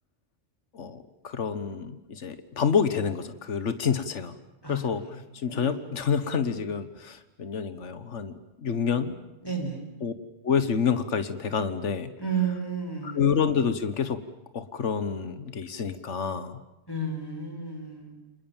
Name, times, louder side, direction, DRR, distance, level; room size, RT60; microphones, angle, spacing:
voice 1, 0.7-4.4 4.7-9.2 10.0-10.1 10.4-12.1 13.0-14.2 14.5-16.6, left 6 dB, 85° left, 11 dB, 1.6 m, -28 dB
voice 2, 9.4-9.8 12.2-13.2 16.9-18.1, right 5 dB, 20° left, 3 dB, 5.3 m, -32 dB
29.0 x 26.5 x 7.3 m, 0.92 s
omnidirectional pair, 1.2 m